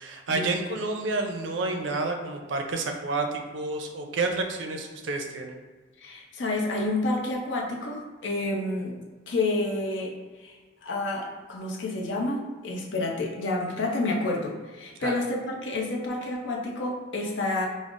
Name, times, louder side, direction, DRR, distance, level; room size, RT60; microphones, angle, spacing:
voice 1, 0.0-5.6 15.0-15.2, right 3 dB, 80° right, 3 dB, 0.5 m, -30 dB
voice 2, 6.0-8.9 9.3-10.5 10.8-17.7, left 2 dB, 85° left, 0 dB, 0.6 m, -29 dB
5.1 x 2.0 x 2.4 m, 1.4 s
head